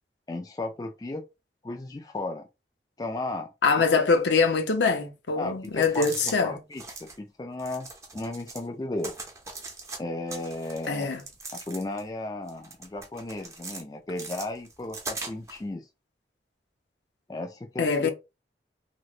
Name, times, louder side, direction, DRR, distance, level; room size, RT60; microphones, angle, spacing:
voice 1, 0.3-1.3 1.6-2.5 3.0-3.5 5.4-7.9 8.1-9.1 10.0-11.1 11.5-15.9 17.3-18.1, left 2 dB, 20° left, 0.3 m, -35 dB
voice 2, 3.6-6.6 10.9-11.2 17.8-18.1, left 4 dB, 85° left, 0.6 m, -23 dB
sound 1, 5.6-6.4 6.7-7.2 7.6-8.7 9.0-10.0 10.3-12.1 12.5-13.8 14.2-15.6, right 3 dB, 15° right, 0.6 m, -40 dB
3.1 x 2.9 x 2.4 m
head